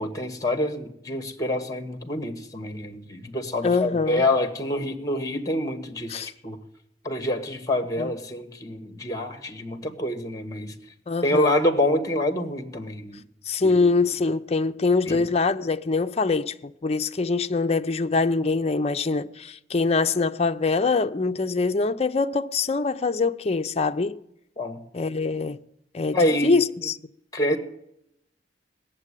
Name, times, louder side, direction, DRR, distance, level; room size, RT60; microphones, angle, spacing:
voice 1, 0.0-6.6 7.0-10.7 11.2-13.2 13.6-13.9 15.1-15.2 24.6-24.8 26.1-26.6 27.3-27.6, left 1 dB, 20° left, 1.6 m, -26 dB
voice 2, 3.6-4.2 6.1-6.3 8.0-8.1 11.1-11.5 13.5-24.2 24.9-25.6 25.9-26.2 26.4-27.0, left 4 dB, 35° left, 0.5 m, -24 dB
17.5 x 7.4 x 9.8 m
head